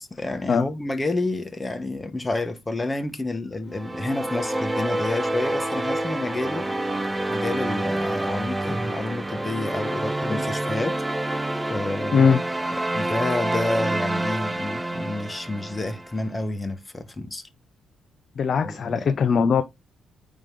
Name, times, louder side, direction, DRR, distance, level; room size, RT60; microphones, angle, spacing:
voice 1, 0.0-6.7 7.3-11.0 11.7-12.4 12.9-17.4 18.6-19.2, left 2 dB, 20° left, 1.1 m, -29 dB
sound 1, 3.7-16.1, right 1 dB, 15° right, 0.6 m, -28 dB
voice 2, 18.4-19.6, left 6 dB, 55° left, 0.6 m, -20 dB
8.9 x 3.7 x 3.3 m
cardioid pair, 90°, 0 cm